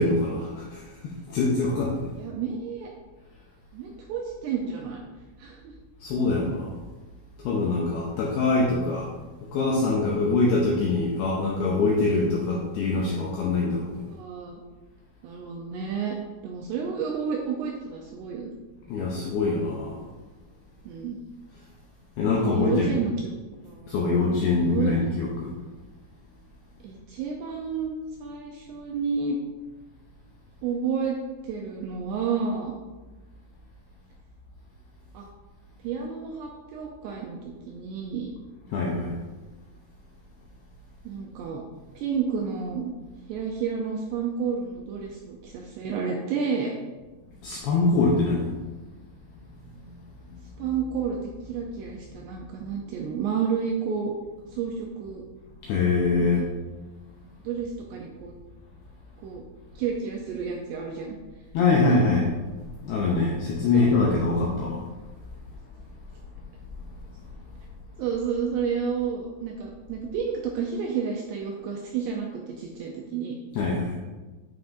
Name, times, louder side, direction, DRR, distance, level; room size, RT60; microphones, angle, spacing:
voice 1, 0.0-2.0 6.0-6.8 7.4-9.1 9.5-14.0 18.9-20.0 22.2-23.0 23.9-25.6 38.7-39.1 47.4-48.5 50.3-50.4 55.6-56.5 61.5-62.2 62.8-64.8 73.6-74.0, left 3 dB, 80° left, -3 dB, 2.3 m, -24 dB
voice 2, 2.2-2.9 3.7-5.0 5.4-5.7 14.1-14.6 15.2-16.2 16.4-18.5 20.9-21.2 22.3-23.4 23.6-24.3 24.6-24.9 26.8-27.9 28.2-29.4 30.6-31.2 31.4-32.8 35.1-35.3 35.8-38.3 41.0-41.6 42.0-42.9 43.3-46.7 50.6-51.2 51.5-54.1 54.5-55.2 56.2-56.3 57.4-58.3 59.2-59.4 59.8-61.2 61.9-62.0 63.7-63.9 68.0-73.4, right 6 dB, 85° right, -1 dB, 2.4 m, -30 dB
10.5 x 5.7 x 2.6 m, 1.2 s
omnidirectional pair, 5.5 m